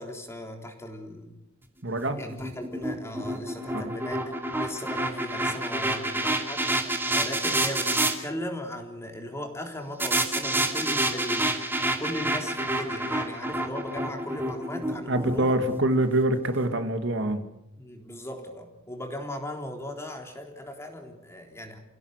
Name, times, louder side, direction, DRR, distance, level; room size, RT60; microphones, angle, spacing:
voice 1, 0.0-1.4 2.2-4.2 4.6-15.6 17.8-21.8, left 1 dB, 15° left, 3 dB, 3.7 m, -38 dB
voice 2, 1.8-2.2 3.8-3.9 15.1-17.4, right 1 dB, 60° right, 7 dB, 2.0 m, -25 dB
sound 1, 2.0-8.1 10.0-16.2, right 1 dB, 10° right, 2.7 m, -28 dB
29.0 x 17.0 x 8.1 m, 0.87 s
head